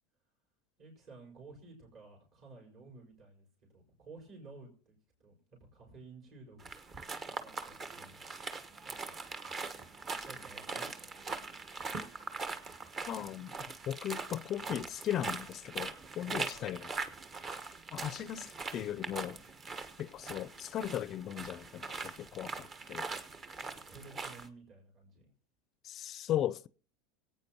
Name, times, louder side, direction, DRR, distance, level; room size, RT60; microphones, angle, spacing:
voice 1, 0.8-3.5 3.7-8.6 8.8-9.2 10.0-11.2 16.2-16.8 23.7-25.3, right 3 dB, 45° right, 4.8 m, -54 dB
sound 1, 6.6-24.5, right 4 dB, 30° right, 1.2 m, -42 dB
voice 2, 13.1-13.6 13.9-16.9 17.9-19.4 20.0-23.1 25.8-26.7, left 11 dB, 45° left, 0.5 m, -37 dB
25.0 x 8.8 x 2.9 m
supercardioid pair, 110°, 0 cm